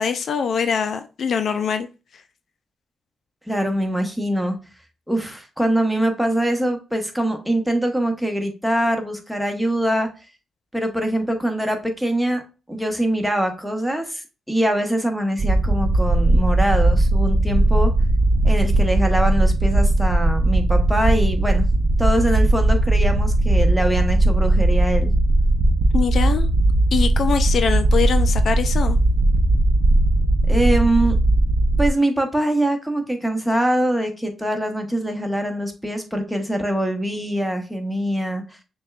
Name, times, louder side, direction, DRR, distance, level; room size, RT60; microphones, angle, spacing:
voice 1, 0.0-1.9 25.9-26.5 26.9-29.0, left 6 dB, 65° left, 0.4 m, -23 dB
voice 2, 3.5-4.6 5.1-10.1 10.7-12.4 12.7-17.9 18.4-21.6 22.0-25.1 30.5-31.2 31.8-38.6, right 1 dB, 5° right, 1.0 m, -23 dB
sound 1, 15.4-31.9, right 2 dB, 55° right, 0.6 m, -18 dB
6.4 x 2.3 x 2.3 m
supercardioid pair, 60°, 0 cm